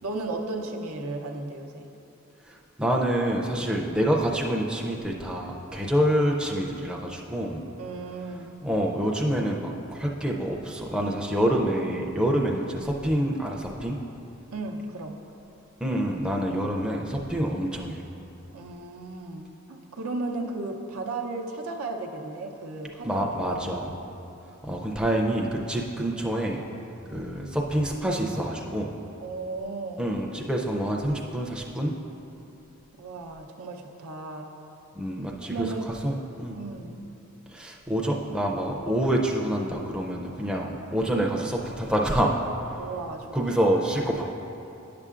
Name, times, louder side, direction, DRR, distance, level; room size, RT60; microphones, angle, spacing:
voice 1, 0.0-1.9 7.8-8.6 14.5-15.2 18.5-24.1 29.2-30.1 32.9-34.5 35.5-35.9 36.5-37.1 42.8-43.4 43.6-43.7, right 2 dB, 90° right, 1 dB, 0.6 m, -35 dB
voice 2, 2.5-7.6 8.6-14.0 15.8-18.0 23.0-24.0 24.6-26.6 27.1-28.9 30.0-32.0 35.0-35.7 36.0-36.6 37.5-42.3 43.3-44.2, right 1 dB, 5° right, -2 dB, 0.4 m, -27 dB
10.5 x 6.7 x 2.4 m, 2.9 s
head